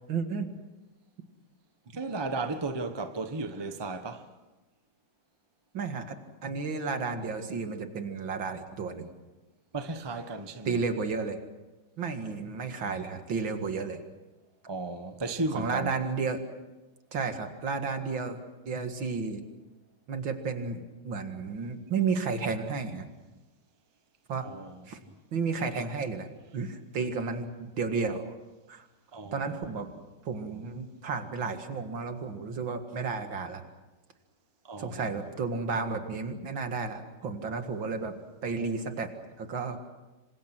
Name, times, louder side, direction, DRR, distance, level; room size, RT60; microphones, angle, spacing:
voice 1, 0.1-0.5 5.7-9.1 10.7-11.4 12.0-14.0 15.5-16.4 17.1-18.4 18.7-19.4 20.1-23.1 24.3-24.5 24.9-25.0 25.3-26.3 26.5-28.3 28.7-28.9 29.3-29.9 30.2-33.6 34.8-38.1 38.4-39.1 39.4-39.8, right 4 dB, 70° right, 2.7 m, -32 dB
voice 2, 1.9-4.3 9.7-10.8 14.7-15.9 24.4-24.8 29.1-29.5 34.6-35.2, right 3 dB, 15° right, 1.0 m, -35 dB
27.0 x 26.0 x 6.1 m
omnidirectional pair, 2.2 m